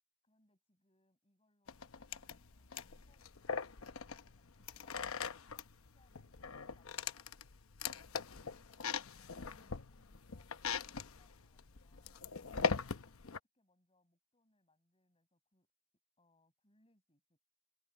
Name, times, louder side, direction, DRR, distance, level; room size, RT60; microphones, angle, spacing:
voice 1, 0.2-4.0 4.2-7.3 7.9-12.2 12.7-15.7 16.2-17.4, left 2 dB, 25° left, 7.9 m, -75 dB
sound 1, 1.7-13.4, left 5 dB, 80° left, 0.9 m, -41 dB
open air
head